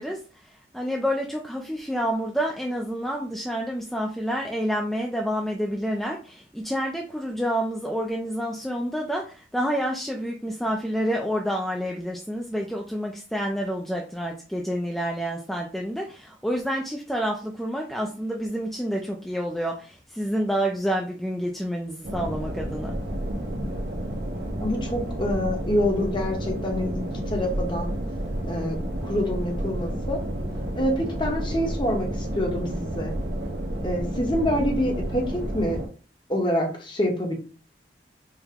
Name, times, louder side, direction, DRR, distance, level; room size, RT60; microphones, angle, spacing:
voice 1, 0.0-23.0, equal, ahead, 0 dB, 0.3 m, -28 dB
sound 1, 22.0-35.9, right 1 dB, 75° right, 0.9 m, -30 dB
voice 2, 24.6-27.9 28.5-28.8 29.0-30.2 30.8-33.1 33.8-35.8 36.3-37.3, equal, 25° left, 2 dB, 0.8 m, -26 dB
4.6 x 2.1 x 3.4 m, 0.36 s
head